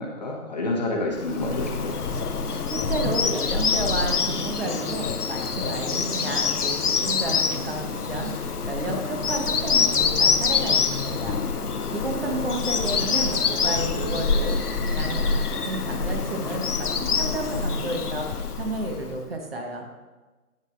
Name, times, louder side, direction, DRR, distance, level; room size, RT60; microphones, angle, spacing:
voice 1, 0.0-2.0 12.3-12.6, left 2 dB, 30° left, -1 dB, 0.9 m, -29 dB
Bird vocalization bird call bird song, 1.2-19.2, left 5 dB, 90° left, 0.7 m, -26 dB
voice 2, 2.7-11.6 11.9-14.6 14.8-19.9, right 2 dB, 40° right, 3 dB, 1.0 m, -31 dB
11.0 x 7.8 x 2.5 m, 1.2 s
figure-of-eight pair, 150°, 44 cm